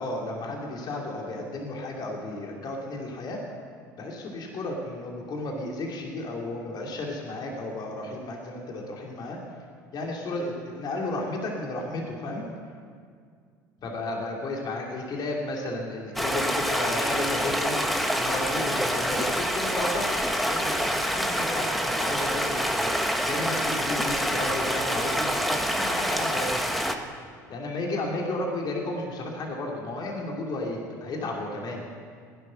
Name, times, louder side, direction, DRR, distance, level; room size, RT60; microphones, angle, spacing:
voice 1, 0.0-3.4 4.0-9.4 9.9-12.4 13.8-17.8 18.2-22.9 23.2-26.7 27.5-31.8, left 2 dB, 45° left, -1 dB, 2.8 m, -33 dB
Stream, 16.2-27.0, equal, ahead, 1.3 m, -26 dB
15.5 x 10.5 x 6.4 m, 2.1 s
hypercardioid pair, 75°, 10 cm